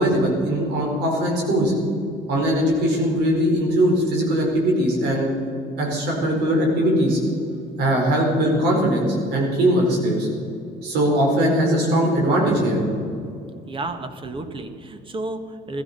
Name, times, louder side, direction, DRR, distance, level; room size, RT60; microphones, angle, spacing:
voice 1, 0.0-1.7 2.3-5.3 5.8-7.2 7.8-10.3 10.8-12.8, equal, 75° right, 0 dB, 4.5 m, -20 dB
voice 2, 13.7-15.8, right 2 dB, 30° right, 9 dB, 1.4 m, -31 dB
15.0 x 14.0 x 5.4 m, 2.5 s
cardioid pair, 110°, 17 cm